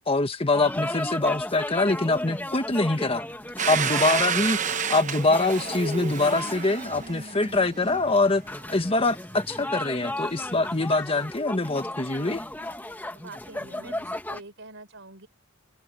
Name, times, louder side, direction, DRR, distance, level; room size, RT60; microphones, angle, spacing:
voice 1, 0.1-3.2 3.7-4.6 4.9-8.4 8.7-12.4, left 2 dB, 25° left, 1.6 m, -24 dB
sound 1, 0.5-14.4, left 1 dB, 10° left, 1.7 m, -35 dB
Domestic sounds home sounds, 3.6-8.2, right 6 dB, 35° right, 1.0 m, -30 dB
voice 2, 4.1-4.7 13.1-15.3, right 3 dB, 60° right, 5.0 m, -45 dB
sound 2, 5.8-11.3, right 1 dB, 20° right, 3.8 m, -53 dB
head